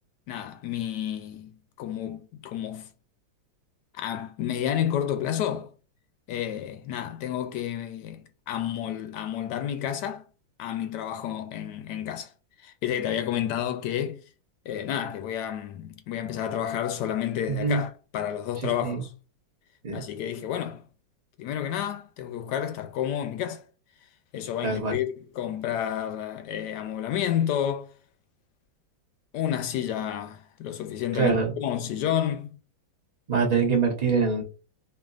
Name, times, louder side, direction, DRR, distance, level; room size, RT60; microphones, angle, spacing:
voice 1, 0.3-1.5 1.8-2.9 3.9-5.7 6.3-10.2 10.6-12.3 12.6-14.2 14.6-19.1 19.9-20.8 21.4-23.6 24.3-27.9 29.3-32.6, left 10 dB, 70° left, 1.1 m, -30 dB
voice 2, 17.5-17.8 18.6-19.0 19.8-20.0 24.6-25.0 31.1-31.5 33.3-34.4, right 5 dB, 40° right, 0.5 m, -24 dB
4.6 x 2.7 x 2.4 m
omnidirectional pair, 2.1 m